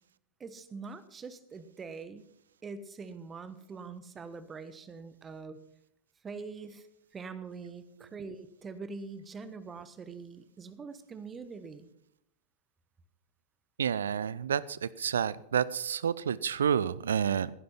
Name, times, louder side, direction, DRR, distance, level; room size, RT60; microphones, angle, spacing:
voice 1, 0.4-2.3 2.6-5.6 6.2-6.9 7.1-11.9, right 4 dB, 20° right, 13 dB, 1.2 m, -44 dB
voice 2, 13.8-17.5, right 8 dB, 65° right, 20 dB, 0.5 m, -29 dB
16.0 x 10.5 x 5.9 m, 0.78 s
figure-of-eight pair, 90°, 0 cm